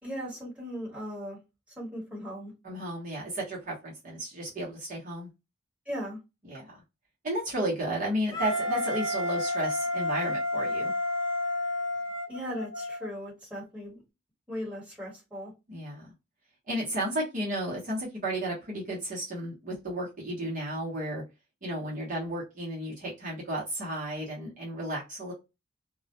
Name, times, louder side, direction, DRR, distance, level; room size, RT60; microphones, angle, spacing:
voice 1, 0.0-1.4 1.8-2.5 5.8-6.2 12.3-14.0 14.5-15.5, equal, 5° right, -6 dB, 1.3 m, -37 dB
voice 2, 2.6-5.3 6.5-6.8 7.2-10.9 15.7-16.1 16.7-21.2 21.6-25.3, right 1 dB, 40° right, -5 dB, 0.8 m, -33 dB
Wind instrument woodwind instrument, 8.3-13.1, left 1 dB, 25° left, 0.7 m, -30 dB
2.2 x 2.0 x 2.7 m, 0.26 s
head